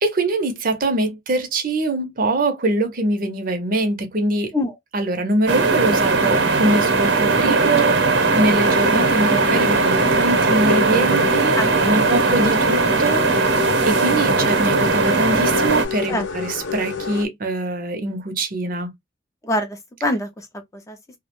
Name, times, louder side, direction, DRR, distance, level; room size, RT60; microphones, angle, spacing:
voice 1, 0.0-4.5 4.9-8.0 8.3-11.5 11.9-13.5 13.8-18.9, right 2 dB, 50° right, 0.6 m, -23 dB
sound 1, 5.5-15.9, right 3 dB, 80° right, 0.8 m, -18 dB
sound 2, 8.4-17.3, left 7 dB, 80° left, 0.4 m, -29 dB
voice 2, 11.6-11.9 16.1-16.3 19.4-20.5 20.7-21.0, left 1 dB, 15° left, 0.4 m, -24 dB
2.3 x 2.0 x 2.8 m
head